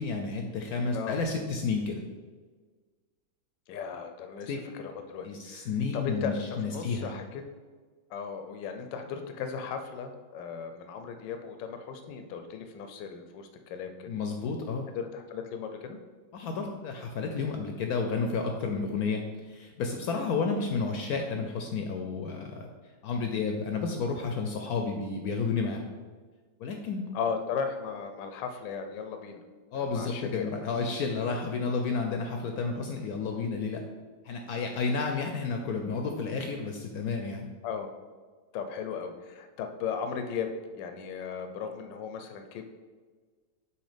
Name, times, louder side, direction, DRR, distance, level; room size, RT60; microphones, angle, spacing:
voice 1, 0.0-2.0 4.5-4.6 5.2-7.1 14.1-14.9 16.3-22.7 23.0-25.9 26.6-27.1 29.7-33.8 34.2-37.5, left 4 dB, 70° left, 3 dB, 0.9 m, -31 dB
voice 2, 3.7-7.4 8.1-14.1 14.9-16.0 27.1-29.4 29.7-30.5 37.6-37.9 38.5-40.5 40.7-42.7, left 6 dB, 85° left, 6 dB, 1.3 m, -36 dB
7.0 x 3.1 x 5.0 m, 1.5 s
omnidirectional pair, 1.9 m